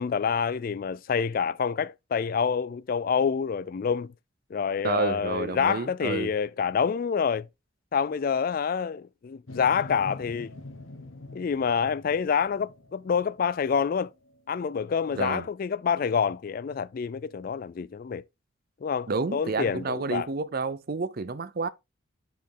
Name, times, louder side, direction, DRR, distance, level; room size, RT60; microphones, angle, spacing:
voice 1, 0.0-4.1 4.5-7.5 7.9-10.5 11.3-14.1 14.5-18.2 18.8-20.3, left 6 dB, 45° left, 0.3 m, -27 dB
voice 2, 4.8-6.3 15.1-15.5 19.1-21.7, right 4 dB, 45° right, 0.5 m, -30 dB
sound 1, 9.5-14.4 14.9-15.0, left 2 dB, 80° left, 1.4 m, -45 dB
6.7 x 5.7 x 3.8 m
head